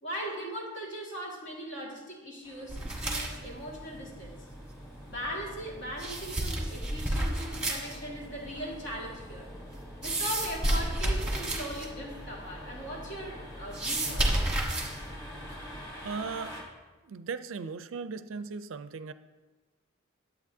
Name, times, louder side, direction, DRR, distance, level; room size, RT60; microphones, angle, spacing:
voice 1, 0.0-4.4 5.1-9.5 10.0-14.4, equal, 55° left, -3 dB, 1.9 m, -39 dB
sound 1, 2.4-16.6, left 1 dB, 20° left, 1.5 m, -49 dB
sound 2, 2.7-15.8, right 1 dB, 5° right, 1.3 m, -33 dB
voice 2, 16.0-16.6 17.0-19.1, right 5 dB, 65° right, 12 dB, 0.4 m, -37 dB
10.5 x 8.1 x 2.7 m, 1.3 s
head